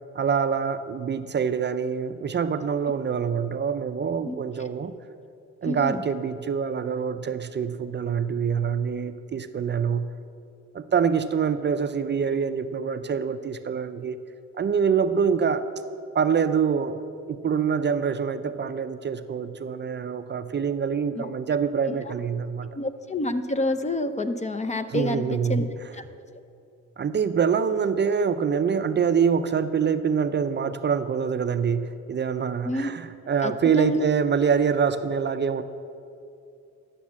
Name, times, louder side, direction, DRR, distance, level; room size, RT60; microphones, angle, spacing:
voice 1, 0.1-4.9 5.6-10.1 10.7-14.2 14.6-15.6 16.1-17.0 17.3-22.8 24.9-25.7 27.0-35.6, right 6 dB, 35° right, 10 dB, 0.5 m, -25 dB
voice 2, 5.6-6.0 21.2-21.3 22.0-22.1 22.7-25.7 25.9-26.0 32.6-32.9 33.4-34.0, left 2 dB, 25° left, 10 dB, 0.6 m, -28 dB
11.5 x 7.3 x 7.3 m, 2.5 s
cardioid pair, 90°, 30 cm